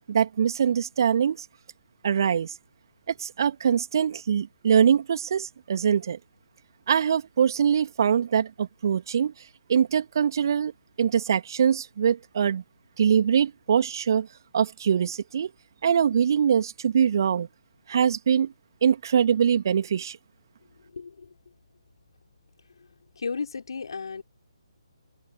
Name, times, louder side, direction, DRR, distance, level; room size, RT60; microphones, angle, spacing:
voice 1, 0.1-1.5 2.0-2.5 3.2-6.2 6.9-9.3 9.7-10.7 11.0-12.6 13.0-14.3 14.5-15.5 15.8-17.5 17.9-18.5 18.8-20.2, right 8 dB, 45° right, 3.1 m, -23 dB
voice 2, 20.9-21.3 23.2-24.2, left 5 dB, 55° left, 5.6 m, -34 dB
open air
figure-of-eight pair, 140°, 3 cm